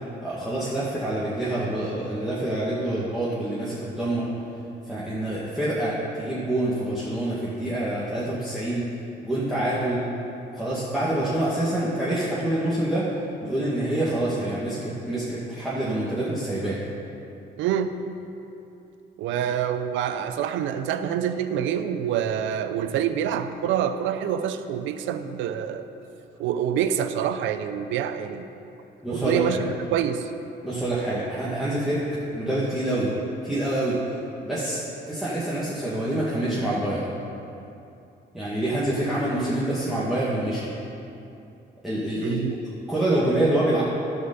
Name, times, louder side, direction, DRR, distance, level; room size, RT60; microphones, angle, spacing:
voice 1, 0.2-4.3 4.9-8.9 9.2-10.0 10.6-13.1 13.4-16.8 29.0-29.6 30.6-32.0 32.3-33.1 33.4-34.0 34.4-34.8 35.1-37.0 38.3-40.7 41.8-42.4 42.9-43.8, right 1 dB, ahead, -9 dB, 1.9 m, -26 dB
voice 2, 17.6-18.0 19.2-25.9 26.4-28.5 29.1-30.3 42.2-42.5, right 9 dB, 90° right, 10 dB, 0.6 m, -26 dB
11.5 x 5.3 x 6.8 m, 2.8 s
cardioid pair, 85°, 19 cm